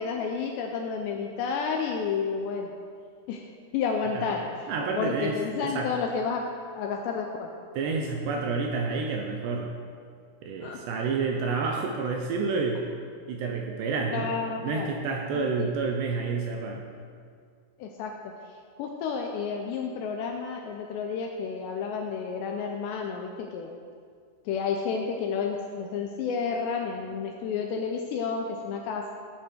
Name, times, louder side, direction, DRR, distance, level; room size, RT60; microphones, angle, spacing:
voice 1, 0.0-2.8 3.3-3.4 3.7-4.7 5.0-6.4 6.8-7.5 10.6-10.8 14.1-15.0 15.3-15.7 17.8-18.3 18.8-23.7 24.5-29.1, left 5 dB, 80° left, 2 dB, 2.6 m, -31 dB
voice 2, 4.7-5.9 7.7-9.7 10.4-12.8 13.3-14.3 14.6-16.8, right 4 dB, 75° right, 1 dB, 2.6 m, -29 dB
15.5 x 8.2 x 4.5 m, 2.1 s
omnidirectional pair, 5.6 m